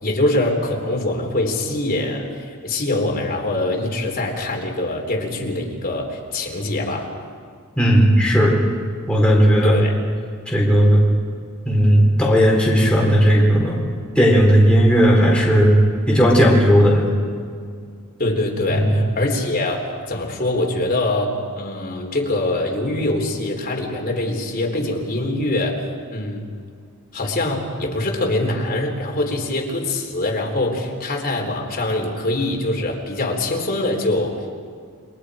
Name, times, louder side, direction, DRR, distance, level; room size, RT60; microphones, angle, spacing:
voice 1, 0.0-7.1 9.6-9.9 18.2-25.8 26.1-26.4 27.1-34.4, left 2 dB, 40° left, 0 dB, 3.6 m, -23 dB
voice 2, 7.8-8.6 9.1-9.8 10.5-11.0 11.7-13.9 14.2-15.7 16.1-17.0 18.7-19.0, equal, 5° left, -3 dB, 3.9 m, -15 dB
29.0 x 22.5 x 5.0 m, 2.1 s
head